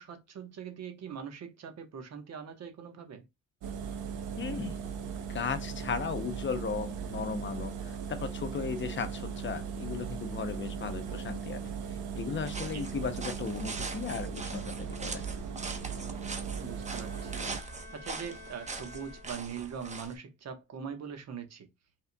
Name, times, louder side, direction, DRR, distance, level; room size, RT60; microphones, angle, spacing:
voice 1, 0.0-3.3 12.6-12.8 16.6-17.5 17.9-21.7, right 7 dB, 60° right, 1.2 m, -42 dB
Engine, 3.6-17.6, right 7 dB, 80° right, 1.0 m, -38 dB
voice 2, 4.4-4.8 5.3-11.7 12.2-15.2, left 6 dB, 40° left, 0.7 m, -36 dB
sound 1, 12.4-20.1, right 3 dB, 25° right, 0.9 m, -42 dB
Bowed string instrument, 16.6-19.8, left 2 dB, 40° right, 2.8 m, -51 dB
5.5 x 3.6 x 2.2 m
cardioid pair, 90°, 30 cm